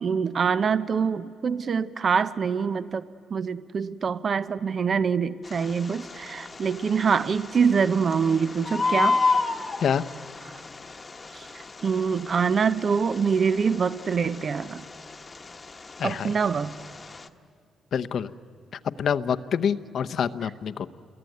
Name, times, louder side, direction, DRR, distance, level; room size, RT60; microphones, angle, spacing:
voice 1, 0.0-3.0 3.3-9.2 11.3-14.8 16.0-16.7, right 6 dB, 45° right, 14 dB, 0.7 m, -25 dB
Bird, 5.4-17.3, left 4 dB, 30° left, 1.2 m, -32 dB
voice 2, 16.0-16.3 17.9-18.3 19.0-20.9, left 7 dB, 60° left, 12 dB, 0.8 m, -26 dB
29.0 x 22.5 x 9.2 m, 2.4 s
cardioid pair, 100°, 0 cm